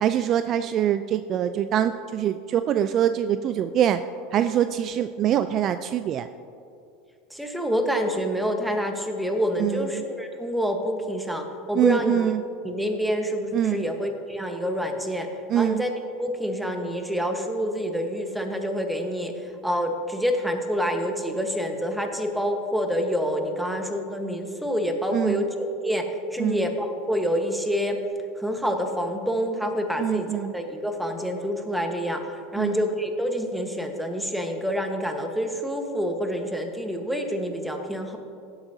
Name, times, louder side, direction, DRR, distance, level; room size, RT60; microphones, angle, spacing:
voice 1, 0.0-4.0 4.3-6.3 9.6-10.0 11.7-12.4 13.5-13.9 15.5-15.8 25.1-25.5 26.4-26.6 30.0-30.5 32.6-32.8, right 10 dB, 45° right, 11 dB, 0.3 m, -24 dB
voice 2, 7.3-12.3 12.6-15.3 15.6-15.9 16.2-19.3 19.6-25.5 25.8-28.0 28.4-30.3 30.5-32.2 32.5-38.2, equal, 5° right, 5 dB, 1.2 m, -27 dB
17.0 x 7.9 x 2.8 m, 2.5 s
hypercardioid pair, 85°, 0 cm